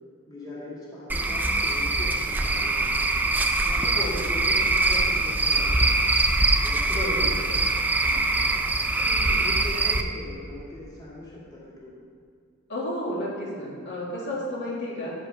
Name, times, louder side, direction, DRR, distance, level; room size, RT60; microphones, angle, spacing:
voice 1, 0.3-3.1 3.6-6.0 6.6-7.5 8.0-8.4 9.0-12.0, left 1 dB, 15° left, -7 dB, 2.1 m, -40 dB
Cricket / Frog, 1.1-10.0, right 2 dB, 10° right, 0.4 m, -23 dB
voice 2, 3.9-4.3 6.9-7.3 12.7-15.1, equal, 50° left, -5 dB, 1.9 m, -31 dB
9.1 x 5.6 x 5.5 m, 2.2 s
head